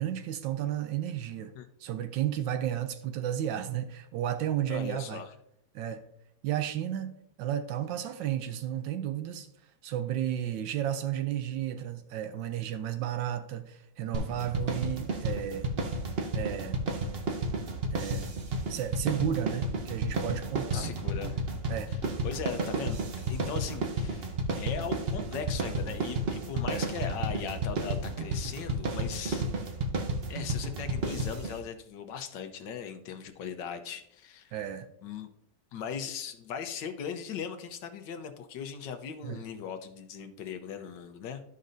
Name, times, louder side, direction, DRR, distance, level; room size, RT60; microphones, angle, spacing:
voice 1, 0.0-1.5 1.8-5.2 5.7-6.0 6.4-7.1 7.4-9.5 9.8-15.7 16.3-16.8 17.9-18.3 18.7-21.0 21.7-21.9 26.7-26.9 34.5-34.9 39.2-39.4, right 10 dB, 85° right, 9 dB, 1.3 m, -33 dB
voice 2, 4.7-5.3 20.7-21.4 21.9-22.0 22.2-23.0 23.3-24.3 24.6-29.7 30.3-34.5 35.0-35.3 35.7-41.4, left 7 dB, 80° left, 7 dB, 1.5 m, -39 dB
sound 1, 14.1-31.6, right 2 dB, 45° right, 0.8 m, -32 dB
13.0 x 5.4 x 2.6 m, 0.76 s
omnidirectional pair, 1.9 m